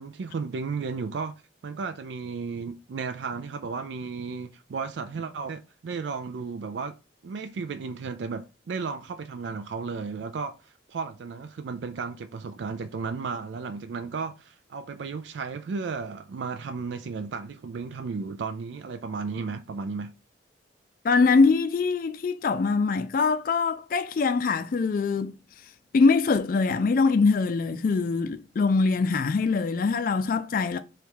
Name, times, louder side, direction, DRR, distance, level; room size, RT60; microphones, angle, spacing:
voice 1, 0.0-7.0 7.2-20.2, right 5 dB, 75° right, 0.4 m, -34 dB
voice 2, 21.0-25.3 25.9-30.8, left 4 dB, 50° left, 0.3 m, -23 dB
3.4 x 3.0 x 4.6 m
head